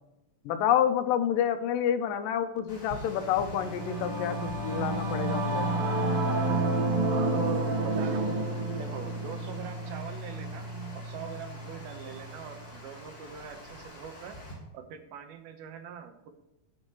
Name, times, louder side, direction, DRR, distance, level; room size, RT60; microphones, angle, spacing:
voice 1, 0.5-5.7, left 9 dB, 75° left, 8 dB, 2.3 m, -28 dB
Water, 2.7-14.5, left 1 dB, 30° left, 4.0 m, -47 dB
Singing / Musical instrument, 3.0-12.7, right 2 dB, 50° right, 1.9 m, -30 dB
voice 2, 7.1-8.5 8.8-10.7 10.9-14.4 14.7-16.3, right 8 dB, 85° right, 6 dB, 3.0 m, -42 dB
19.0 x 6.5 x 3.1 m, 0.91 s
omnidirectional pair, 4.2 m